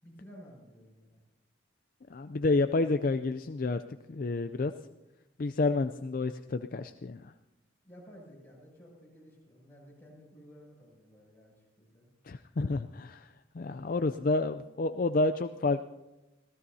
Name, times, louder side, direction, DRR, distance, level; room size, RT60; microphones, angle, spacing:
voice 1, 0.0-1.2 7.8-12.1, equal, 10° left, -5 dB, 7.3 m, -54 dB
voice 2, 2.1-3.8 4.1-4.7 5.4-7.2 12.3-13.3 13.6-15.8, left 3 dB, 45° left, 9 dB, 0.4 m, -29 dB
25.5 x 17.0 x 2.8 m, 1.0 s
head